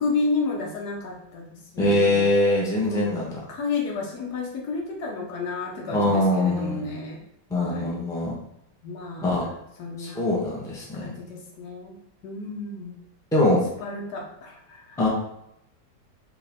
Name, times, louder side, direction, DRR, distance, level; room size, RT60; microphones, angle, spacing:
voice 1, 0.0-2.3 2.8-3.1 3.5-7.2 7.5-8.0 8.8-9.4 9.8-10.2 10.9-12.0 12.2-12.9 13.8-15.0, left 3 dB, 70° left, 0 dB, 1.4 m, -31 dB
voice 2, 1.8-3.3 5.9-6.8 7.5-8.3 9.2-9.4 10.0-11.1 13.3-13.6 15.0-15.1, left 1 dB, 5° left, -4 dB, 0.7 m, -22 dB
4.7 x 3.0 x 3.5 m, 0.79 s
omnidirectional pair, 1.8 m